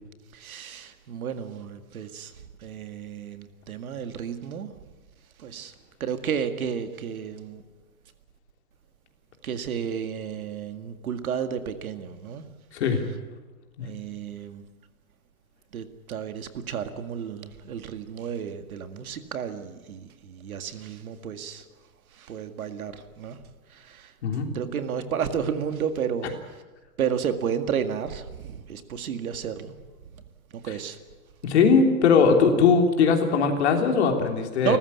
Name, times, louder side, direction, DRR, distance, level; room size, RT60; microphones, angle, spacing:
voice 1, 0.3-4.8 5.4-5.7 6.0-7.7 9.4-12.6 13.8-14.6 15.7-21.7 22.1-23.4 23.7-24.1 24.5-26.6 27.0-29.8 30.1-30.2 30.5-31.0 34.6-34.8, right 8 dB, 65° right, 2.1 m, -32 dB
voice 2, 31.4-34.8, left 5 dB, 45° left, 3.3 m, -20 dB
29.5 x 14.5 x 8.5 m
hypercardioid pair, 180°, 46 cm